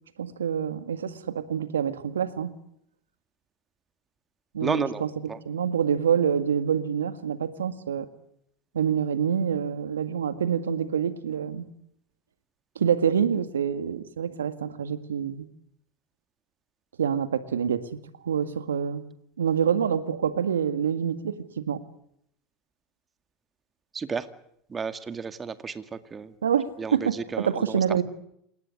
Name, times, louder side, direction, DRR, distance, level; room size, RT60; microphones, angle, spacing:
voice 1, 0.2-2.5 4.5-5.1 5.5-8.1 8.7-11.7 12.8-15.5 17.0-19.0 19.4-21.8 26.4-28.0, right 8 dB, 90° right, 11 dB, 1.9 m, -26 dB
voice 2, 4.6-5.0 5.3-5.4 23.9-24.3 24.7-26.3 26.8-27.8, right 5 dB, 25° right, 10 dB, 2.0 m, -32 dB
27.5 x 19.0 x 9.8 m, 0.75 s
hypercardioid pair, 85°, 0 cm